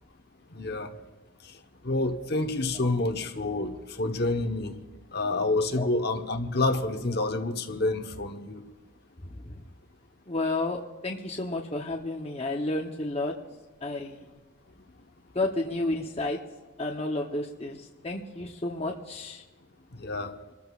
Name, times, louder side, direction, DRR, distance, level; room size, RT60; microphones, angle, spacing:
voice 1, 0.5-0.9 1.8-4.8 5.1-8.6 19.9-20.3, left 2 dB, 50° left, 5 dB, 1.1 m, -28 dB
voice 2, 10.3-13.3 13.8-14.3 15.3-16.4 16.8-19.4, left 2 dB, 30° left, 0 dB, 0.8 m, -31 dB
27.5 x 14.0 x 2.4 m, 1.2 s
head